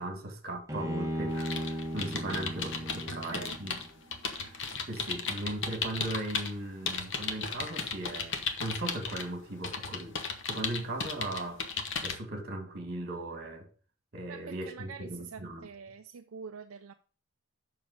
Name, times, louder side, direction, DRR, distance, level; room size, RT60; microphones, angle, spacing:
voice 1, 0.0-3.8 4.3-4.6 4.9-10.2 10.4-11.6 12.0-13.7 14.1-15.7, right 1 dB, 50° right, 1.9 m, -38 dB
Bowed string instrument, 0.7-4.0, equal, 15° right, 1.1 m, -36 dB
sound 1, 1.3-6.5 6.9-9.3 9.6-12.2, left 5 dB, 60° left, 1.1 m, -35 dB
voice 2, 3.0-3.6 14.3-16.9, right 6 dB, 70° right, 0.5 m, -45 dB
7.2 x 6.0 x 5.3 m
head